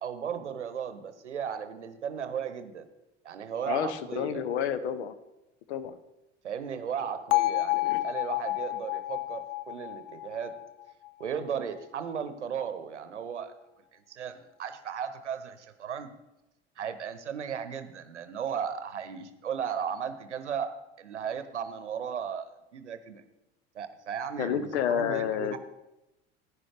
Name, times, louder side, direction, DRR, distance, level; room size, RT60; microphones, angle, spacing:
voice 1, 0.0-2.9 3.2-4.4 6.4-10.6 11.2-13.5 13.9-16.1 16.8-22.5 22.7-23.2 23.7-25.6, right 7 dB, 90° right, 11 dB, 0.8 m, -35 dB
voice 2, 3.7-5.2 5.7-5.9 7.7-8.0 24.4-25.6, left 9 dB, 75° left, 12 dB, 0.9 m, -30 dB
Bell, 7.3-11.4, left 19 dB, 45° left, 0.5 m, -30 dB
11.0 x 10.0 x 3.4 m, 0.94 s
hypercardioid pair, 70°, 34 cm